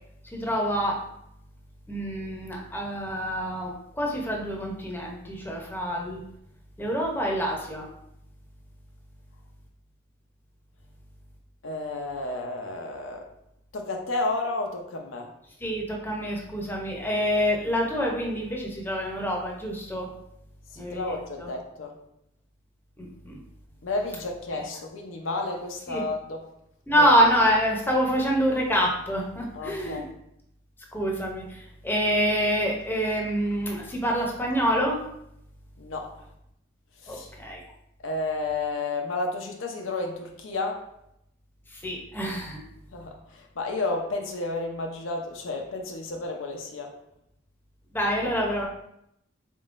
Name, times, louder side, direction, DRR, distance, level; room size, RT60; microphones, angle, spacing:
voice 1, 0.2-1.0 1.9-6.2 6.8-7.9 15.6-20.1 20.8-21.5 23.0-23.4 24.5-24.6 25.9-26.0 26.9-30.1 30.9-35.0 37.1-37.6 41.7-42.6 47.9-48.7, equal, 10° left, -1 dB, 0.7 m, -26 dB
voice 2, 11.6-13.3 13.7-15.3 20.7-22.0 23.8-26.4 27.0-27.1 29.5-30.1 35.8-36.2 37.0-37.3 38.0-40.9 42.9-46.9 48.2-48.3, left 2 dB, 85° left, 2 dB, 0.6 m, -31 dB
4.0 x 3.7 x 2.5 m, 0.77 s
head